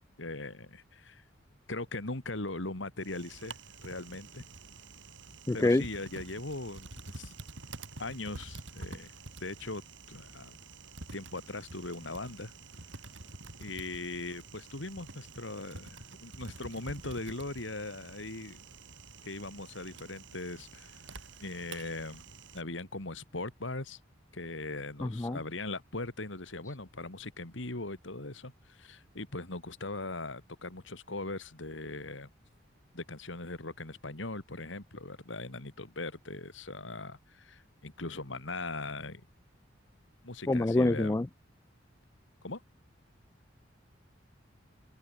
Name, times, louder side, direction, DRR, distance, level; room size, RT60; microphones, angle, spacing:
voice 1, 0.2-1.2 1.7-4.5 5.5-7.3 8.0-9.1 9.4-9.8 10.1-10.6 11.1-12.5 13.6-18.6 19.2-22.3 22.5-24.0 24.3-32.3 32.9-39.3 40.2-41.1 42.4-42.6, left 2 dB, 75° left, 2.7 m, -40 dB
Typing, 3.0-22.6, right 3 dB, 70° right, 4.3 m, -48 dB
voice 2, 5.5-5.8 25.0-25.4 40.5-41.3, left 2 dB, 15° left, 0.4 m, -26 dB
open air
head